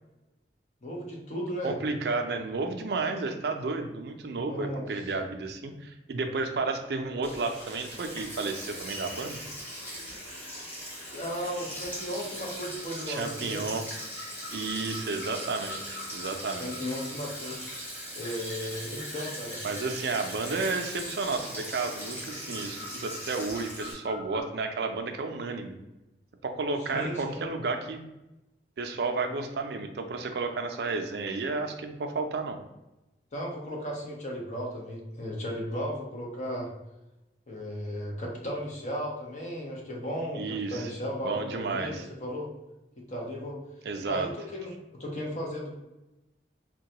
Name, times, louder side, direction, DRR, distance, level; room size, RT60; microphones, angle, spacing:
voice 1, 0.8-1.8 4.4-4.8 11.1-13.7 16.6-17.6 18.1-19.6 26.8-27.4 33.3-36.7 37.5-42.5 43.0-43.6 44.1-45.8, equal, 45° left, -2 dB, 0.7 m, -35 dB
voice 2, 1.6-9.4 13.1-13.8 14.5-16.7 19.6-25.8 26.4-28.0 28.8-32.6 40.3-40.9 41.2-42.0 43.8-44.3, right 3 dB, 65° right, 5 dB, 0.4 m, -32 dB
Sink (filling or washing), 7.2-23.9, equal, 10° left, 1.0 m, -40 dB
sound 1, 12.8-24.4, left 2 dB, 85° left, 0.8 m, -47 dB
3.8 x 2.2 x 2.8 m, 0.97 s
head